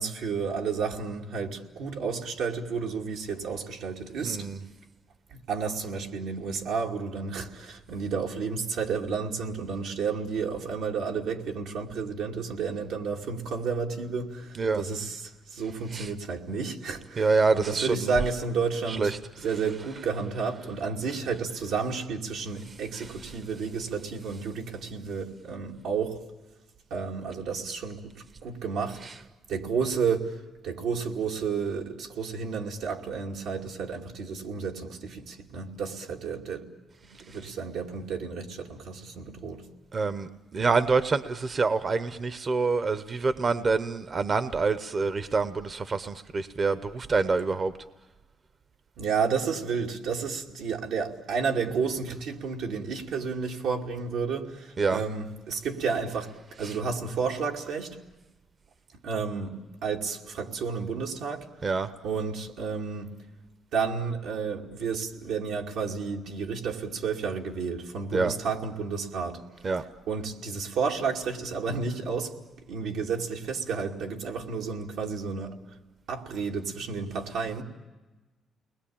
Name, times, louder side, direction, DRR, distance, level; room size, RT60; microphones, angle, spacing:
voice 1, 0.0-4.5 5.3-26.2 26.9-29.1 29.5-30.4 30.6-36.7 37.1-39.6 49.0-58.0 59.0-61.5 62.0-63.1 63.7-69.4 70.1-75.6 76.1-77.6, right 5 dB, 85° right, 2.5 m, -31 dB
voice 2, 4.2-4.6 14.6-14.8 15.9-16.1 17.2-18.1 18.9-19.2 22.9-23.0 29.0-29.1 39.9-47.7 54.8-55.0 56.6-56.7 61.6-61.9 68.1-68.3 69.6-69.8, right 4 dB, 40° right, 0.9 m, -26 dB
29.5 x 21.0 x 8.7 m
cardioid pair, 90°, 0 cm